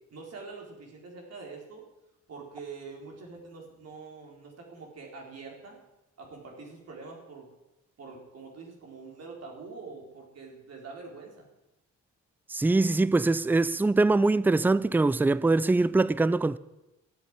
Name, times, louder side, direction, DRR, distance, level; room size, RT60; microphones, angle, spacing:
voice 1, 0.1-1.9 2.3-5.8 6.2-7.5 8.0-11.5, right 4 dB, 55° right, 4.2 m, -45 dB
voice 2, 12.5-16.6, right 3 dB, 5° right, 0.4 m, -23 dB
13.5 x 8.5 x 9.5 m
cardioid pair, 90°, 30 cm